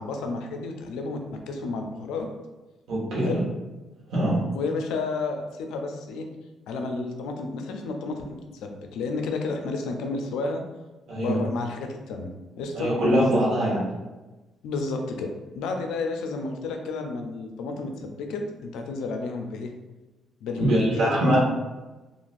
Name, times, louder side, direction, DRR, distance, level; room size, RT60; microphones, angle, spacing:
voice 1, 0.0-2.3 3.2-3.5 4.5-6.3 6.7-10.6 11.1-12.3 12.5-12.9 14.6-19.7 20.4-21.5, left 3 dB, 90° left, 4 dB, 0.4 m, -31 dB
voice 2, 2.9-3.4 4.1-4.4 11.1-11.4 12.7-13.9 20.6-21.4, right 1 dB, 80° right, -5 dB, 1.1 m, -23 dB
3.1 x 2.4 x 2.5 m, 1.1 s
cardioid pair, 90°, 0 cm